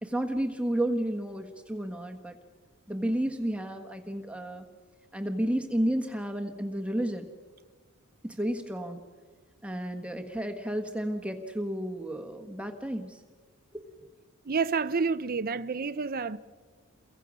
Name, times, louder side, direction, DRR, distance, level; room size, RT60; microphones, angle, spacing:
voice 1, 0.0-2.4 2.9-4.6 5.1-7.3 8.2-9.0 9.6-13.2 14.0-14.1, right 1 dB, 5° right, 1.3 m, -31 dB
voice 2, 14.5-16.4, right 5 dB, 45° right, 0.6 m, -29 dB
29.0 x 23.0 x 6.2 m
head